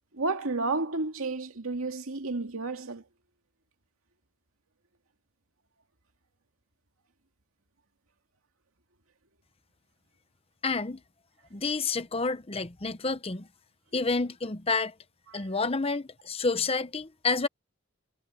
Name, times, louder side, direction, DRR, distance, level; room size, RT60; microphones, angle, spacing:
voice 1, 0.1-3.0 15.3-15.4, right 3 dB, 80° right, 2.2 m, -31 dB
voice 2, 10.6-11.0 11.5-13.5 13.9-14.9 15.3-17.5, left 4 dB, 25° left, 0.8 m, -29 dB
head